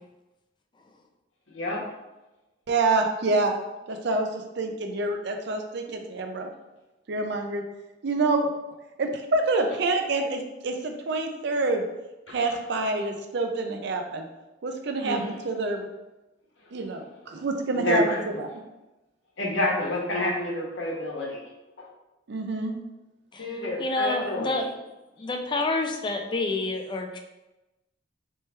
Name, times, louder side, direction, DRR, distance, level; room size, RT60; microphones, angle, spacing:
voice 1, 1.5-1.8 12.3-12.4 13.0-13.1 15.0-15.3 17.7-18.2 19.4-21.4 23.4-24.7, left 1 dB, 85° left, -2 dB, 1.0 m, -28 dB
voice 2, 2.7-3.5 3.9-6.5 7.1-7.6 8.0-8.5 9.0-11.8 12.3-14.3 14.6-15.2 15.4-15.9 16.7-18.0 18.4-18.5 22.3-22.7, right 3 dB, 60° right, 5 dB, 0.5 m, -27 dB
voice 3, 23.8-24.7 25.2-27.2, left 2 dB, 25° left, 3 dB, 0.4 m, -28 dB
3.2 x 3.2 x 3.2 m, 1.0 s
head